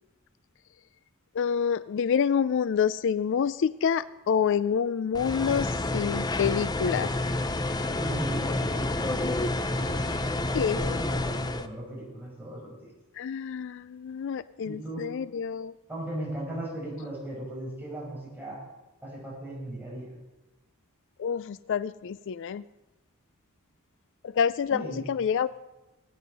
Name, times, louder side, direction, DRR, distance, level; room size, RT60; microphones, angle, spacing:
voice 1, 1.3-7.1 10.5-10.8 13.2-15.7 21.2-22.6 24.2-25.5, left 7 dB, 55° left, 16 dB, 0.3 m, -27 dB
sound 1, 5.1-11.7, left 2 dB, 20° left, 0.6 m, -29 dB
voice 2, 7.9-9.2 9.8-12.9 14.6-15.1 15.9-18.7 19.0-20.1 24.7-25.0, right 1 dB, 10° right, -4 dB, 5.5 m, -37 dB
19.5 x 9.4 x 5.4 m, 1.1 s
head